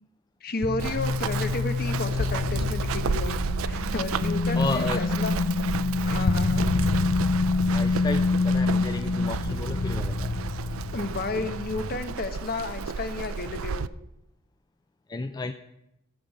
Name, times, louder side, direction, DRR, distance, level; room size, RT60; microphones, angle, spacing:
voice 1, 0.4-3.4 3.6-5.3 6.0-6.7 10.9-13.8, left 3 dB, 50° left, 8 dB, 1.0 m, -32 dB
sound 1, 0.6-11.9, left 3 dB, 85° left, 0.7 m, -26 dB
Run, 0.8-13.9, right 5 dB, 90° right, 0.4 m, -33 dB
voice 2, 4.6-5.0 7.7-10.3 15.1-15.5, left 3 dB, 20° left, 8 dB, 0.4 m, -32 dB
14.0 x 5.2 x 7.3 m, 0.85 s
head